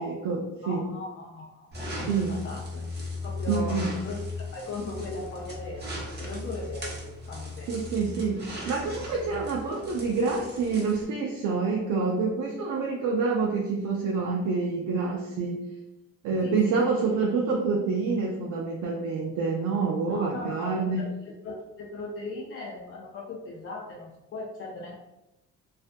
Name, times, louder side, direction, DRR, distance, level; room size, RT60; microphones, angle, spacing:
voice 1, 0.0-0.9 2.0-2.4 3.5-3.9 7.7-15.6 16.2-21.1, right 4 dB, 70° right, -1 dB, 0.5 m, -27 dB
voice 2, 0.6-1.7 1.9-2.9 3.2-4.2 4.5-7.7 16.4-16.8 20.1-21.1 21.4-24.9, left 2 dB, 40° left, -3 dB, 0.5 m, -38 dB
sound 1, 1.7-11.0, left 2 dB, 35° right, 0.8 m, -37 dB
2.5 x 2.2 x 2.5 m, 0.93 s
cardioid pair, 90°, 30 cm